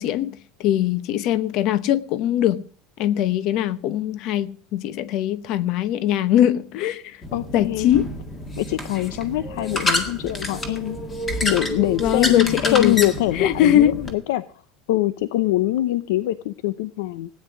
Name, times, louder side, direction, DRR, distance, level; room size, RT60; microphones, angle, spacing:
voice 1, 0.0-2.6 3.0-7.2 7.5-8.1 12.0-13.1 13.3-14.0, left 11 dB, 40° left, 0.9 m, -21 dB
sound 1, 7.2-14.1, left 1 dB, 15° left, 1.8 m, -28 dB
voice 2, 7.3-8.0 8.6-11.0 11.4-14.4 14.9-17.3, left 15 dB, 75° left, 0.7 m, -23 dB
17.5 x 9.7 x 6.1 m
cardioid pair, 175°, 0 cm